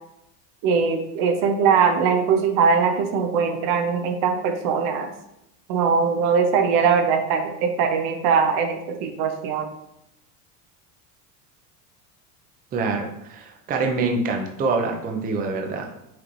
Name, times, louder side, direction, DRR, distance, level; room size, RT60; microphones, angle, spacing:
voice 1, 0.6-5.1 5.7-9.7, right 6 dB, 65° right, 6 dB, 0.8 m, -21 dB
voice 2, 12.7-15.9, right 3 dB, 20° right, 2 dB, 0.5 m, -25 dB
5.9 x 3.1 x 2.6 m, 0.82 s
supercardioid pair, 125°, 40 cm